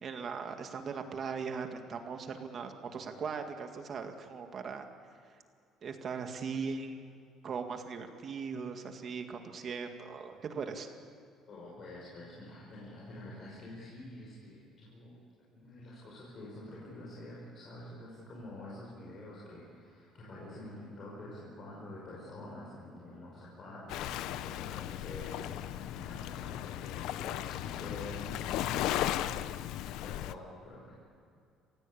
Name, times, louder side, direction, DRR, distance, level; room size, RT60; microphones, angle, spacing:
voice 1, 0.0-4.9 5.8-7.0 7.4-10.9, right 5 dB, 35° right, 5 dB, 2.0 m, -39 dB
voice 2, 11.5-15.2 15.5-30.9, left 1 dB, 35° left, -5 dB, 5.7 m, -47 dB
Waves surf, 23.9-30.3, left 13 dB, 75° left, 0.7 m, -36 dB
28.0 x 16.0 x 8.6 m, 2.5 s
cardioid pair, 165°, 0 cm